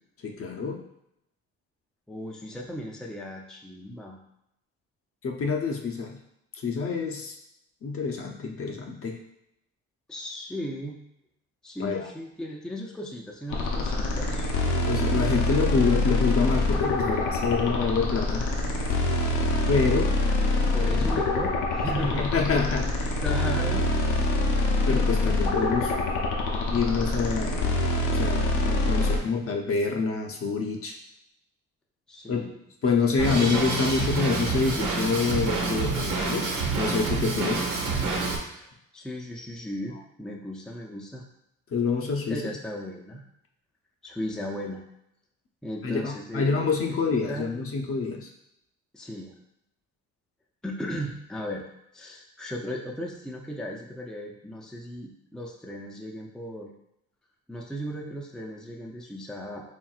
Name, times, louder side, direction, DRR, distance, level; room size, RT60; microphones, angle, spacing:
voice 1, 0.2-0.8 5.2-6.2 6.6-7.3 7.8-9.2 11.8-12.1 14.9-18.4 19.7-20.1 22.0-23.1 24.9-25.9 26.7-27.7 28.1-31.0 32.3-32.4 32.8-37.7 41.7-42.4 45.8-48.3, left 4 dB, 50° left, 2 dB, 0.7 m, -27 dB
voice 2, 2.1-4.2 10.1-11.0 11.6-14.5 20.7-22.7 23.2-23.9 32.1-32.6 33.1-33.8 37.6-37.8 38.5-41.2 42.3-43.2 44.0-44.8 45.6-47.0 47.3-47.6 48.9-49.4 50.6-51.6 51.9-56.7 57.5-59.7, equal, ahead, 0 dB, 0.5 m, -36 dB
sound 1, 13.5-29.2, left 2 dB, 75° left, 0.8 m, -25 dB
Drum kit, 33.2-38.4, right 3 dB, 80° right, 1.1 m, -27 dB
4.4 x 3.3 x 2.4 m, 0.79 s
cardioid pair, 90°, 30 cm